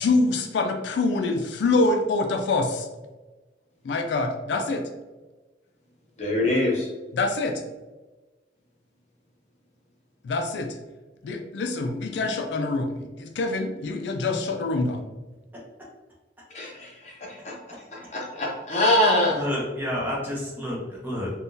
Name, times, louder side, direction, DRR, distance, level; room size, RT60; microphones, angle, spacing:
voice 1, 0.0-2.9 3.8-4.8 7.1-7.6 10.2-10.8 11.2-15.0, left 3 dB, 75° left, 4 dB, 0.3 m, -25 dB
voice 2, 6.2-6.9 16.5-17.5 17.9-19.4, left 1 dB, 40° left, -2 dB, 0.8 m, -24 dB
voice 3, 19.3-21.3, left 1 dB, 10° right, -6 dB, 0.9 m, -30 dB
3.6 x 2.3 x 2.6 m, 1.2 s
head